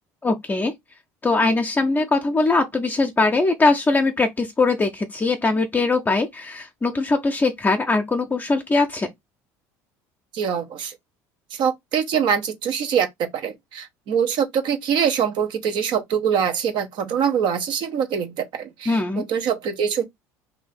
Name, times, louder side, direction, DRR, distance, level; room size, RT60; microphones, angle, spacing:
voice 1, 0.2-0.7 1.2-9.1 18.9-19.2, left 3 dB, 20° left, 0.7 m, -21 dB
voice 2, 10.3-11.0 11.5-20.0, right 7 dB, 60° right, 0.9 m, -24 dB
2.7 x 2.7 x 4.2 m
supercardioid pair, 85°, 9 cm